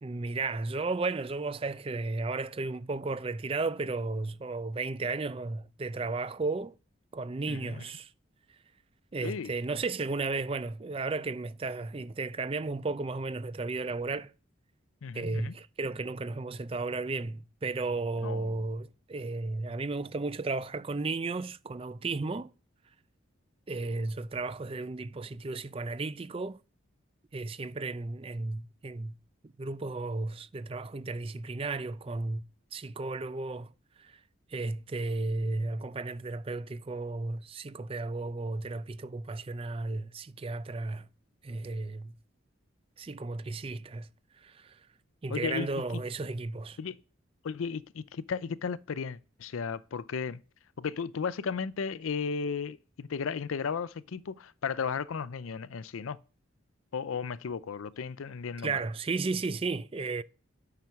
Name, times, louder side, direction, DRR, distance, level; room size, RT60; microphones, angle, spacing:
voice 1, 0.0-6.7 7.1-8.1 9.1-14.3 15.1-22.5 23.7-26.6 27.3-29.1 29.4-32.4 32.7-33.7 34.0-34.2 34.5-41.1 41.4-42.1 43.0-44.1 44.4-44.8 45.2-46.8 58.6-60.2, right 3 dB, 25° right, 0.4 m, -34 dB
voice 2, 7.5-7.8 9.2-9.5 15.0-15.5 18.2-18.5 45.3-46.0 46.8-47.0 47.4-50.4 50.8-56.2 56.9-58.8, left 6 dB, 80° left, 0.5 m, -35 dB
9.2 x 5.9 x 5.8 m
head